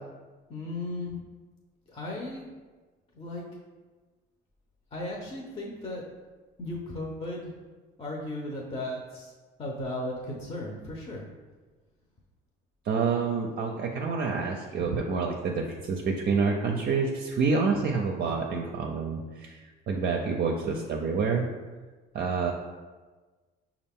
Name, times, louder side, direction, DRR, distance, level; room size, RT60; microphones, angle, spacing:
voice 1, 0.5-1.2 1.9-2.5 3.1-3.5 4.9-6.0 6.6-7.5 8.0-9.3 9.6-11.3, left 1 dB, 25° left, -2 dB, 0.7 m, -36 dB
voice 2, 12.9-19.6 19.9-21.5 22.1-22.5, right 4 dB, 50° right, 1 dB, 0.5 m, -28 dB
5.2 x 2.4 x 3.6 m, 1.3 s
supercardioid pair, 85°, 21 cm